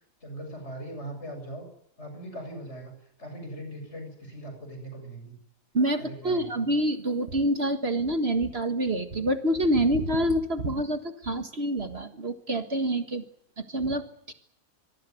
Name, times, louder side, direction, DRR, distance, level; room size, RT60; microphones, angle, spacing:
voice 1, 0.2-1.7 2.0-2.9 3.2-5.4 6.0-6.8, right 1 dB, 50° left, 5 dB, 7.7 m, -40 dB
voice 2, 5.7-13.2 13.6-14.3, right 1 dB, 45° right, 7 dB, 1.9 m, -27 dB
25.5 x 18.5 x 9.4 m, 0.72 s
omnidirectional pair, 1.5 m